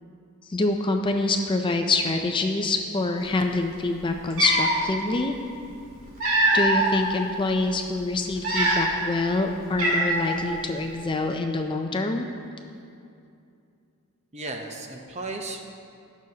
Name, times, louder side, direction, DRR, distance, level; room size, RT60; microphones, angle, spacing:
voice 1, 0.4-5.3 6.5-12.3, left 2 dB, 20° left, 4 dB, 0.4 m, -25 dB
Cat, 3.8-3.9 4.3-4.8 5.8-7.0 7.5-7.7 8.3-9.1 9.3-9.4 9.8-10.4, right 1 dB, 65° right, 2.0 m, -23 dB
voice 2, 14.3-15.6, right 2 dB, 30° right, 3 dB, 0.8 m, -34 dB
18.0 x 6.3 x 2.8 m, 2.5 s
head